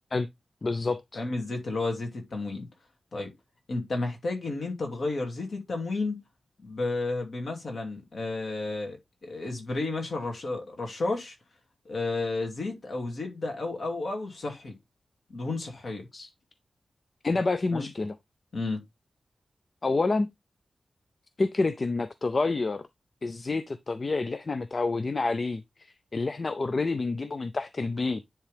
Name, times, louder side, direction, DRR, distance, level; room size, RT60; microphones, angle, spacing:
voice 1, 0.6-1.2 16.1-16.3 17.2-18.2 19.8-20.3 21.4-22.9 23.2-28.2, left 3 dB, 35° left, 0.4 m, -28 dB
voice 2, 1.1-2.7 3.1-3.3 3.7-6.2 6.6-11.4 11.8-14.8 15.3-16.1 17.7-17.9 18.5-18.8, left 2 dB, 55° left, 2.4 m, -32 dB
10.0 x 3.5 x 3.3 m
wide cardioid pair, 180°, 0 cm